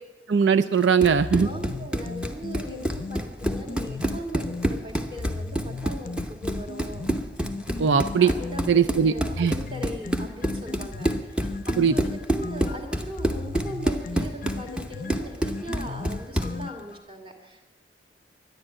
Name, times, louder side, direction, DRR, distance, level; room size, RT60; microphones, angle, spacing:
voice 1, 0.3-1.5 7.8-8.3 8.7-9.5 11.8-11.9, right 6 dB, 80° right, 10 dB, 0.4 m, -20 dB
Run, 0.8-16.6, right 1 dB, 5° right, 0.8 m, -29 dB
sound 1, 1.2-4.7 5.2-8.7 9.2-17.0, left 3 dB, 45° left, 0.5 m, -36 dB
voice 2, 1.4-7.1 8.2-11.6 11.9-17.7, equal, 30° right, 2 dB, 2.3 m, -39 dB
12.5 x 10.5 x 8.8 m, 1.1 s
head